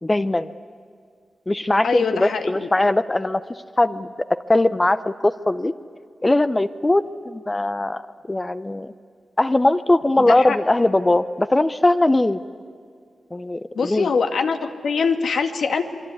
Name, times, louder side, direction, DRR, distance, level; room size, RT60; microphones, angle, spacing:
voice 1, 0.0-0.5 1.5-3.4 3.8-5.7 6.2-8.9 9.4-12.4 13.3-14.1, left 2 dB, 20° left, 12 dB, 0.7 m, -20 dB
voice 2, 1.8-2.7 10.2-10.6 13.7-15.8, left 5 dB, 80° left, 6 dB, 1.8 m, -23 dB
27.0 x 22.5 x 9.6 m, 2.2 s
wide cardioid pair, 95°, 0 cm